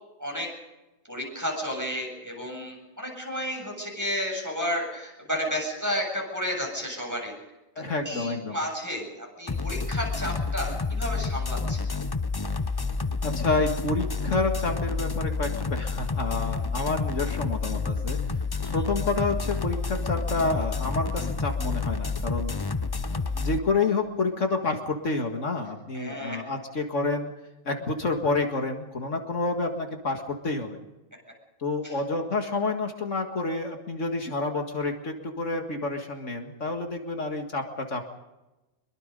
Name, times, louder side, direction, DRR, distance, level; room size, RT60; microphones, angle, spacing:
voice 1, 1.1-7.3 8.0-11.8 18.6-18.8 25.9-26.4 31.8-32.0, equal, 15° right, 0 dB, 7.7 m, -32 dB
voice 2, 7.8-8.6 13.2-18.2 18.7-22.5 23.1-27.3 27.7-30.8 31.6-38.1, left 3 dB, 65° left, 4 dB, 2.2 m, -29 dB
sound 1, 9.5-23.6, left 4 dB, 25° left, 0.5 m, -29 dB
24.5 x 23.0 x 5.3 m, 1.0 s
omnidirectional pair, 1.4 m